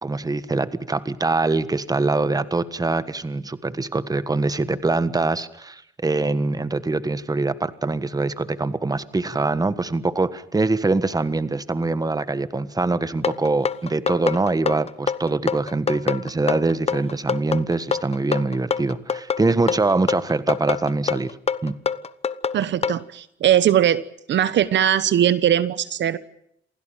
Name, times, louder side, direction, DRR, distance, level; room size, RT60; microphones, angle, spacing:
voice 1, 0.0-21.4 21.6-21.8, right 3 dB, 20° right, 14 dB, 1.5 m, -23 dB
sound 1, 13.2-23.0, left 6 dB, 30° left, 1.0 m, -25 dB
voice 2, 22.5-24.0 24.3-26.2, right 10 dB, 65° right, 16 dB, 1.1 m, -20 dB
28.0 x 17.0 x 9.1 m, 0.76 s
cardioid pair, 90°, 20 cm